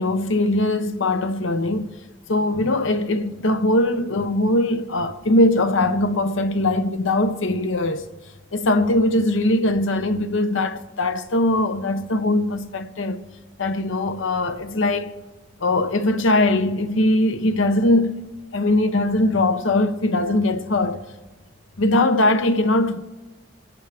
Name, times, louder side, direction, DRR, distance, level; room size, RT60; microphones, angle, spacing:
voice 1, 0.0-1.9 2.3-8.1 8.5-13.2 13.6-15.1 15.6-18.3 18.5-21.0 21.8-23.0, left 2 dB, 85° left, 0.8 m, -21 dB
28.0 x 10.0 x 3.4 m
head